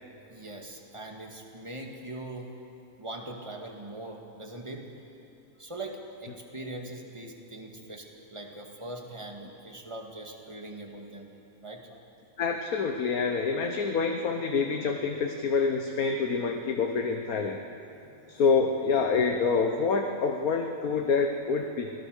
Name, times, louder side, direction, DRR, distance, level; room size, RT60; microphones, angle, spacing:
voice 1, 0.3-2.5 3.0-4.9 5.6-11.3 11.6-11.8 18.0-18.4, right 2 dB, 20° right, 2 dB, 2.1 m, -41 dB
voice 2, 12.4-17.6 18.3-21.9, left 5 dB, 85° left, 3 dB, 1.6 m, -27 dB
26.0 x 17.5 x 6.6 m, 2.8 s
omnidirectional pair, 1.5 m